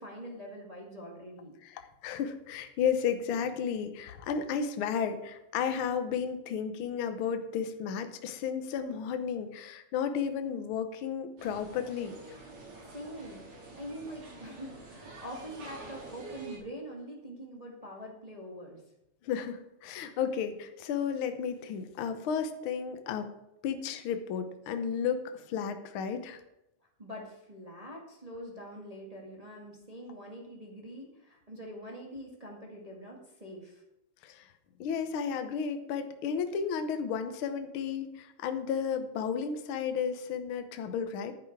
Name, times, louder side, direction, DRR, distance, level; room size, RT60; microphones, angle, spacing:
voice 1, 0.0-1.5 12.9-18.8 27.0-33.8, equal, 15° right, -1 dB, 1.5 m, -44 dB
voice 2, 1.6-12.4 19.2-23.3 23.6-26.4 34.2-34.5 34.8-41.3, left 7 dB, 75° left, 8 dB, 1.2 m, -33 dB
sound 1, 11.4-16.6, right 3 dB, 85° right, 4.8 m, -47 dB
11.0 x 9.2 x 4.7 m, 0.86 s
omnidirectional pair, 3.5 m